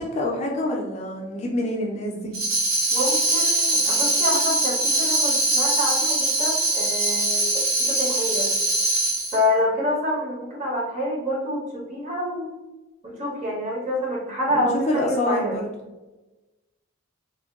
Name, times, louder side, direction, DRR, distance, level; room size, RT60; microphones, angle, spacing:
voice 1, 0.0-2.6 14.9-15.7, left 1 dB, 30° left, -1 dB, 0.3 m, -26 dB
Tambourine, 2.3-9.4, right 2 dB, 80° right, 0.8 m, -22 dB
voice 2, 2.9-8.5 9.3-12.5 13.0-15.6, left 1 dB, 35° right, -3 dB, 0.8 m, -27 dB
3.5 x 2.2 x 2.2 m, 1.1 s
head